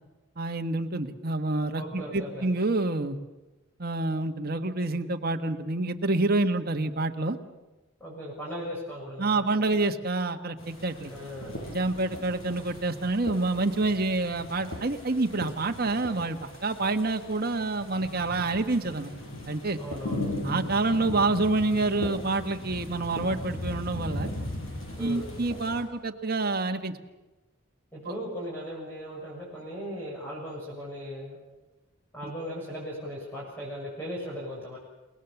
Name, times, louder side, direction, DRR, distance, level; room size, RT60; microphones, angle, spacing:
voice 1, 0.4-3.2 3.8-7.4 9.2-11.1 11.7-19.1 19.5-19.8 20.4-24.3 25.0-26.9 32.2-32.3, right 2 dB, 45° right, 6 dB, 1.5 m, -27 dB
voice 2, 1.7-2.5 8.0-9.5 11.1-11.5 19.7-20.2 25.0-25.3 27.9-31.4 32.1-34.8, equal, 10° left, -6 dB, 7.0 m, -38 dB
sound 1, 10.6-25.8, left 1 dB, 70° left, 6.9 m, -38 dB
30.0 x 19.0 x 7.2 m, 1.1 s
head